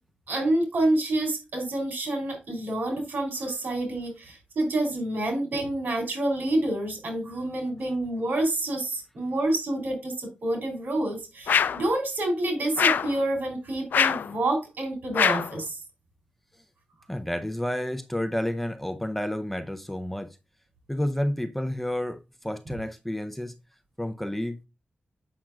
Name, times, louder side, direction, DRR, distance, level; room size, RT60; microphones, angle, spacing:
voice 1, 0.3-15.8, right 1 dB, 75° right, 3.0 m, -28 dB
sound 1, 11.5-11.9 12.8-13.2 13.9-14.3 15.1-15.6, left 7 dB, 90° left, 0.3 m, -23 dB
voice 2, 17.1-20.4 20.9-23.6 24.0-24.6, left 1 dB, 5° left, 0.5 m, -30 dB
7.5 x 5.9 x 2.3 m
wide cardioid pair, 90°, 3 cm